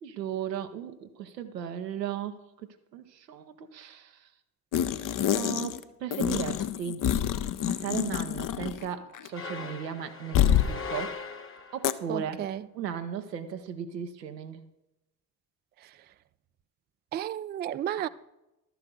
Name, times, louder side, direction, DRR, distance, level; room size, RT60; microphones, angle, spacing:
voice 1, 0.0-2.5 2.9-4.3 5.3-7.0 7.7-11.2 11.7-12.4 12.7-14.6, right 8 dB, 85° right, 0.9 m, -36 dB
sound 1, 4.7-5.8 6.1-8.9 9.1-9.3 10.3-10.7 11.8-11.9, left 10 dB, 40° left, 0.7 m, -27 dB
sound 2, 9.3-12.0, left 4 dB, 25° left, 1.1 m, -39 dB
voice 2, 12.1-12.6 17.1-18.1, right 11 dB, 25° right, 0.3 m, -32 dB
12.5 x 6.0 x 6.9 m
figure-of-eight pair, 40°, 48 cm